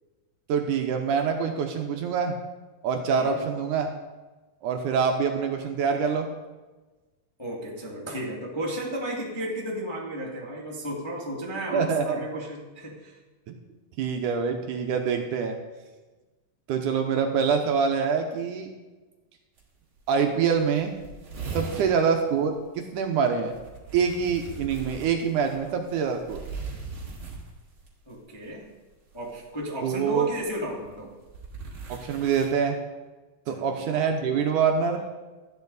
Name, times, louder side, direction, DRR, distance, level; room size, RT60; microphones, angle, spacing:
voice 1, 0.5-2.4 2.8-3.9 4.6-6.3 11.7-12.2 13.5-13.6 14.0-15.6 16.7-18.7 20.1-20.9 21.5-23.5 23.9-26.4 29.8-30.3 31.9-32.8 33.5-35.0, right 6 dB, 75° right, 4 dB, 2.1 m, -25 dB
voice 2, 7.4-13.2 21.6-21.9 28.1-28.6 29.1-31.1 33.5-33.7, equal, 15° left, -4 dB, 1.1 m, -33 dB
sound 1, 19.6-19.7 20.0-20.1 20.3-20.4 20.6-22.0 23.5-27.9 29.1-29.4 30.3-32.5, right 3 dB, 40° right, 2.6 m, -39 dB
13.0 x 9.6 x 4.0 m, 1.2 s
omnidirectional pair, 4.0 m